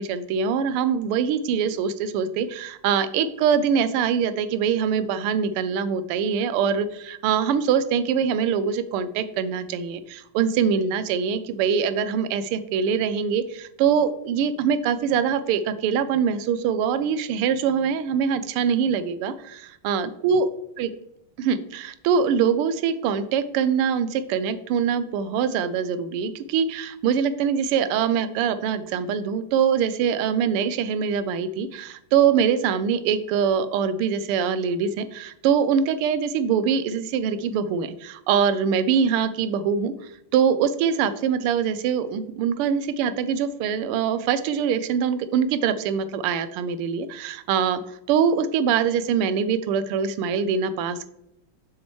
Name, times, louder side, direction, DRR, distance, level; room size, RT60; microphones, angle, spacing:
voice 1, 0.0-20.5 20.8-20.9 21.4-39.9 40.3-47.8 48.1-51.1, right 7 dB, 90° right, 13 dB, 1.5 m, -23 dB
7.3 x 6.2 x 3.1 m, 0.80 s
omnidirectional pair, 2.4 m